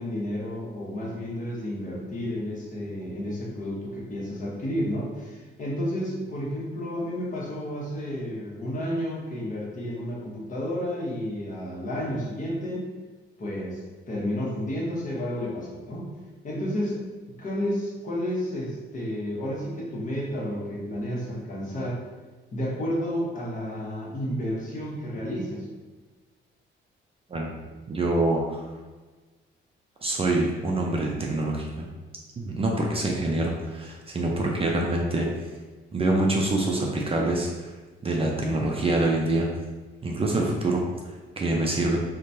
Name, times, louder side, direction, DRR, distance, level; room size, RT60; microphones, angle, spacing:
voice 1, 0.0-12.9 13.4-13.8 14.1-16.1 16.4-17.0 17.4-22.0 22.5-25.7, equal, 40° left, -4 dB, 1.0 m, -31 dB
voice 2, 27.9-28.6 30.0-31.8 32.4-35.3 35.9-37.7 38.0-39.5 40.0-42.0, right 2 dB, 30° right, -1 dB, 0.4 m, -25 dB
3.0 x 2.2 x 2.6 m, 1.3 s
cardioid pair, 90°, 20 cm